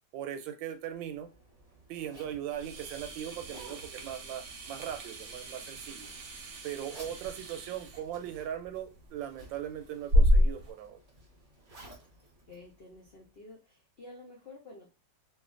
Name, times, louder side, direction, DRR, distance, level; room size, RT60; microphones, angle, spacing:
voice 1, 0.1-1.3 1.9-6.1 6.6-11.0, right 10 dB, 85° right, 6 dB, 1.3 m, -39 dB
Zipper (clothing), 0.8-13.4, right 1 dB, 35° right, 0.6 m, -56 dB
sound 1, 2.5-10.7, left 1 dB, 65° right, 1.0 m, -31 dB
voice 2, 12.5-14.9, left 2 dB, 80° left, -2 dB, 0.5 m, -51 dB
3.0 x 2.4 x 2.4 m, 0.29 s
omnidirectional pair, 2.0 m